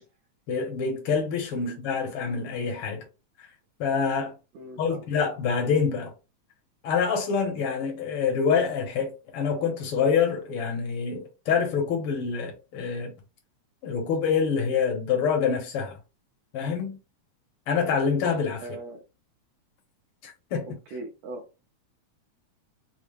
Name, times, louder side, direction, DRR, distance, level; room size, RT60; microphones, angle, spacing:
voice 1, 0.5-3.0 3.8-4.3 4.8-6.1 6.8-13.1 13.8-16.0 16.5-17.0 17.7-18.6 20.2-20.8, left 6 dB, 65° left, 1.5 m, -26 dB
voice 2, 4.5-5.0 18.6-19.0 20.9-21.4, right 2 dB, 75° right, 1.8 m, -39 dB
4.7 x 2.0 x 3.2 m
omnidirectional pair, 3.3 m